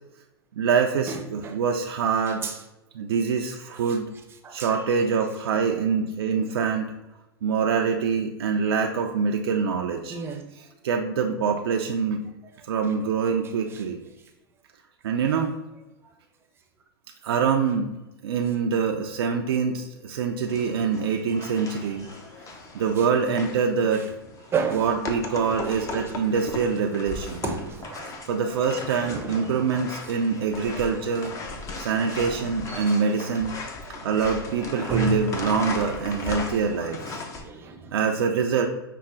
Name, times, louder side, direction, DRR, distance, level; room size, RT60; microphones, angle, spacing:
voice 1, 0.6-2.4 2.9-4.1 4.5-6.9 7.4-10.2 10.8-12.2 12.7-14.0 15.0-15.5 17.2-17.9 18.2-22.1 22.7-24.1 24.7-27.4 28.3-31.3 31.8-33.5 34.0-37.2 37.9-38.7, right 6 dB, 70° right, 3 dB, 0.4 m, -25 dB
voice 2, 1.1-1.6 2.4-2.6 3.7-4.0 4.4-4.8 10.1-10.4 13.7-13.8 21.4-21.7 22.1-22.2 23.0-23.1 24.5-24.9 25.7-26.0 27.4-28.1 28.6-29.7 30.0-30.1 32.1-32.2 32.7-33.0 33.8-33.9 34.9-35.5 36.1-36.3 37.3-38.0, right 5 dB, 20° right, 3 dB, 0.6 m, -33 dB
sound 1, 20.5-37.4, left 3 dB, 25° left, 0.6 m, -37 dB
5.5 x 2.0 x 3.7 m, 0.98 s
hypercardioid pair, 115°, 13 cm